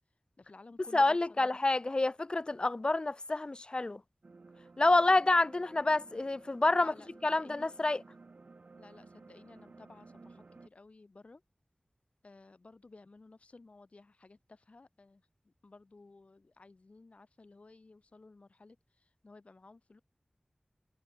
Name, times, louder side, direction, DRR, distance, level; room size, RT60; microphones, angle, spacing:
voice 1, 0.4-1.5 2.0-2.1 6.8-7.7 8.8-11.4 12.2-20.0, left 3 dB, 65° left, 7.8 m, -56 dB
voice 2, 0.9-4.0 4.8-6.9 7.2-8.0, left 2 dB, 40° left, 0.4 m, -28 dB
sound 1, 4.2-10.7, right 3 dB, 75° right, 7.7 m, -55 dB
wide cardioid pair, 55°, 2 cm